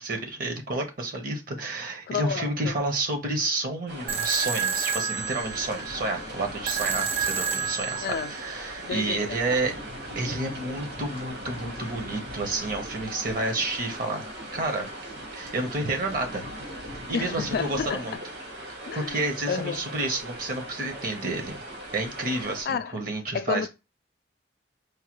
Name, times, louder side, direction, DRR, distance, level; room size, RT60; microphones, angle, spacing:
voice 1, 0.0-9.7 10.1-14.2 14.5-14.9 15.3-16.5 16.9-18.2 18.9-21.6 21.9-23.6, right 2 dB, 50° right, 0.9 m, -30 dB
voice 2, 2.1-2.8 8.0-8.3 8.8-9.8 17.1-18.1 18.9-19.2 19.5-19.9 22.7-22.9 23.3-23.7, left 6 dB, 55° left, 0.3 m, -31 dB
sound 1, 3.9-22.6, right 1 dB, 65° right, 1.6 m, -40 dB
sound 2, 4.1-9.1, right 6 dB, 35° right, 0.4 m, -30 dB
sound 3, 5.3-17.9, left 1 dB, 85° right, 1.8 m, -43 dB
4.7 x 2.2 x 3.0 m
head